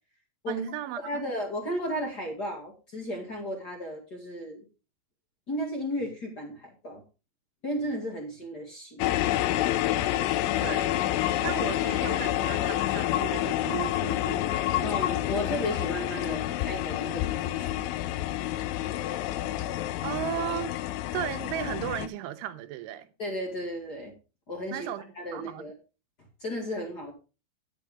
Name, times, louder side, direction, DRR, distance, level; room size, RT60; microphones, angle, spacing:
voice 1, 0.5-1.2 10.6-11.0 11.4-15.0 20.0-20.7 21.1-23.1 24.7-25.0 25.3-25.6, right 13 dB, 90° right, 3.3 m, -35 dB
voice 2, 1.0-4.6 5.5-7.0 7.6-9.1 14.8-17.8 23.2-24.1 24.5-24.9 25.1-25.7 26.4-27.1, equal, 55° left, 1.1 m, -34 dB
sound 1, 9.0-22.1, left 14 dB, 85° left, 3.1 m, -28 dB
10.5 x 9.2 x 3.5 m
omnidirectional pair, 5.4 m